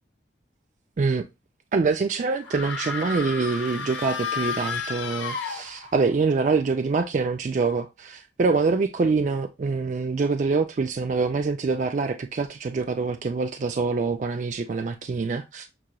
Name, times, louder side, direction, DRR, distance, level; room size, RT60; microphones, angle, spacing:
voice 1, 1.7-15.7, right 4 dB, 40° right, 0.3 m, -25 dB
sound 1, 2.4-6.1, left 5 dB, 85° left, 0.8 m, -32 dB
6.1 x 2.8 x 2.2 m
head